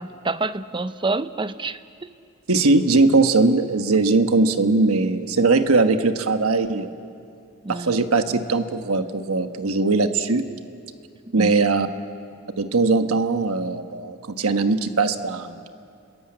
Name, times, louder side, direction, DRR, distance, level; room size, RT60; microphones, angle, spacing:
voice 1, 0.0-2.1 7.6-8.1 11.3-11.9, right 3 dB, 20° right, 13 dB, 0.6 m, -28 dB
voice 2, 2.5-6.9 7.7-10.5 11.3-11.9 12.6-15.6, right 3 dB, 80° right, 8 dB, 1.2 m, -20 dB
29.5 x 22.5 x 8.7 m, 2.5 s
head